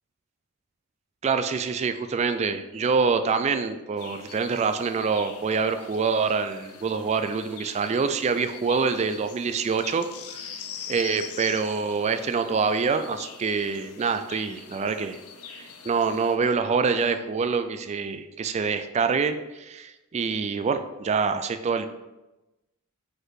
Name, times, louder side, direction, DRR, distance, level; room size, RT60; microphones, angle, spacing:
voice 1, 1.2-10.6 10.9-15.2 15.5-21.9, right 5 dB, 30° right, 9 dB, 0.3 m, -26 dB
sound 1, 4.0-16.4, left 7 dB, 80° left, 0.7 m, -43 dB
5.1 x 4.0 x 4.8 m, 1.0 s
head